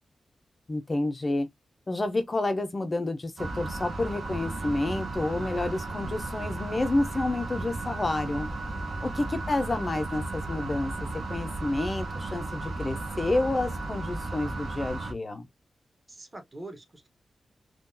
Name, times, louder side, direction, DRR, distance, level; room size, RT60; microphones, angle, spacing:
voice 1, 0.7-1.5 1.9-8.5 9.0-10.9 11.3-15.5, left 2 dB, 25° left, 0.5 m, -29 dB
sound 1, 3.4-15.1, right 2 dB, 60° right, 0.8 m, -34 dB
voice 2, 16.1-17.1, right 2 dB, 20° right, 0.9 m, -44 dB
3.7 x 2.3 x 2.5 m
wide cardioid pair, 175°, 0 cm